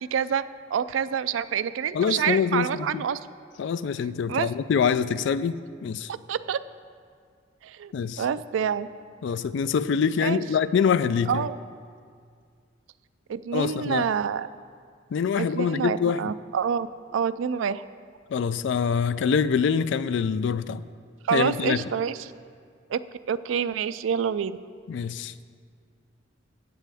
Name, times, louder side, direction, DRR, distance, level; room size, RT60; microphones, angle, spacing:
voice 1, 0.0-0.4 0.7-3.2 4.3-4.5 6.1-6.6 7.6-8.9 10.2-10.4 11.3-11.6 13.3-14.5 15.4-16.9 17.1-17.8 21.3-22.3 22.9-23.0 23.3-24.6, right 7 dB, 85° right, 15 dB, 0.3 m, -27 dB
voice 2, 1.9-3.0 3.6-6.1 7.9-8.2 9.2-11.5 13.5-14.0 15.1-16.2 18.3-20.8 21.3-21.8 24.9-25.4, left 6 dB, 70° left, 15 dB, 0.3 m, -25 dB
15.5 x 8.3 x 3.4 m, 2.1 s
head